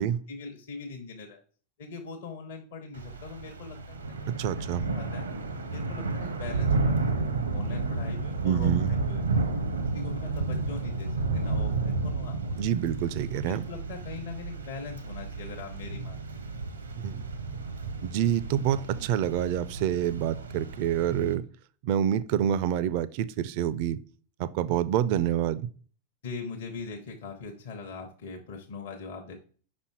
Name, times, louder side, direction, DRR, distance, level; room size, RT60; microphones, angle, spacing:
voice 1, 0.3-1.4 1.8-4.3 4.6-5.3 5.7-7.2 7.5-9.2 9.6-12.6 13.3-16.6 26.2-29.4, left 4 dB, 55° left, 0.9 m, -42 dB
Thunder / Rain, 2.9-21.3, right 3 dB, 75° right, 0.8 m, -31 dB
voice 2, 4.3-4.9 8.4-8.9 12.6-13.6 17.0-17.2 18.0-21.4 21.8-24.0 24.4-25.7, right 10 dB, 45° right, 0.4 m, -27 dB
5.4 x 4.3 x 4.6 m
figure-of-eight pair, 90°, 0 cm